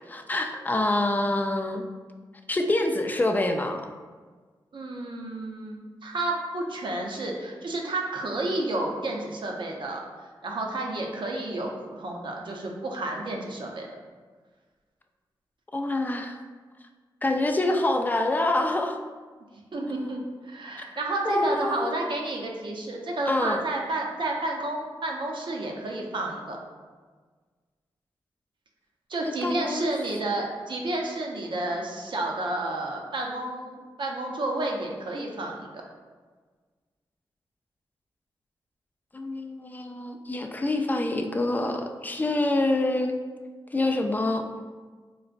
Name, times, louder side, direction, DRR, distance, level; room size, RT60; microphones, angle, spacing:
voice 1, 0.1-1.8 2.5-3.8 15.7-16.4 17.2-19.0 21.2-21.9 23.3-23.6 29.4-29.9 39.1-43.2 43.7-44.4, left 2 dB, 20° left, 5 dB, 0.3 m, -26 dB
voice 2, 4.7-10.0 10.4-13.9 19.7-26.6 29.1-35.7, right 2 dB, 60° right, 0 dB, 0.6 m, -31 dB
3.9 x 2.1 x 2.4 m, 1.4 s
cardioid pair, 50°, 9 cm